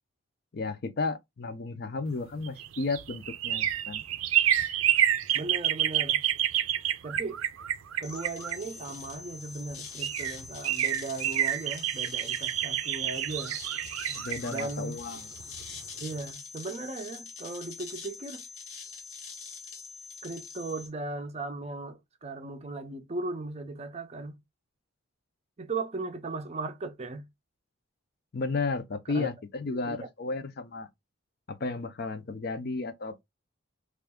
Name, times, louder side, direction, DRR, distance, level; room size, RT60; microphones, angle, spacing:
voice 1, 0.5-4.0 14.1-15.3 28.3-30.9 31.5-33.2, left 3 dB, 50° left, 0.5 m, -33 dB
sound 1, 2.3-9.1 9.7-9.8 10.0-15.8 16.1-16.2, right 11 dB, 80° right, 0.5 m, -29 dB
voice 2, 5.3-6.2 7.0-7.4 8.0-13.6 14.5-15.0 16.0-18.4 20.2-24.4 25.6-27.3 29.1-29.3 29.7-30.0, right 3 dB, 30° right, 0.5 m, -37 dB
sound 2, 8.0-20.9, left 5 dB, 75° left, 1.0 m, -44 dB
3.3 x 2.4 x 3.5 m
head